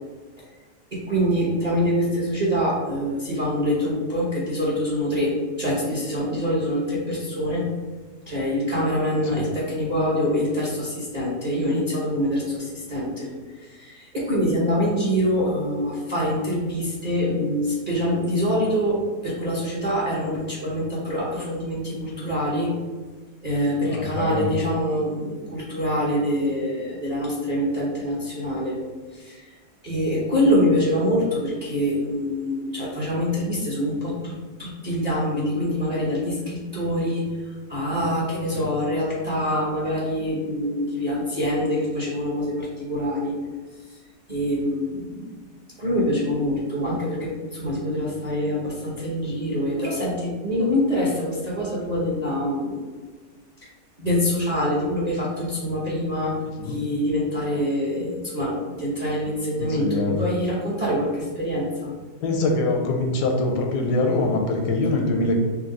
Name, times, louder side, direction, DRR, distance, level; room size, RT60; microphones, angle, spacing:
voice 1, 0.9-7.7 8.3-13.3 13.6-22.7 23.4-28.8 29.1-29.5 29.8-34.3 34.6-37.3 37.7-43.3 44.3-45.3 45.8-52.8 54.0-61.9, equal, 30° right, -6 dB, 0.7 m, -25 dB
voice 2, 23.9-24.6 38.5-38.7 56.6-56.8 59.6-60.2 62.2-65.4, left 2 dB, 75° left, 3 dB, 1.2 m, -24 dB
5.8 x 2.0 x 3.8 m, 1.4 s
omnidirectional pair, 1.9 m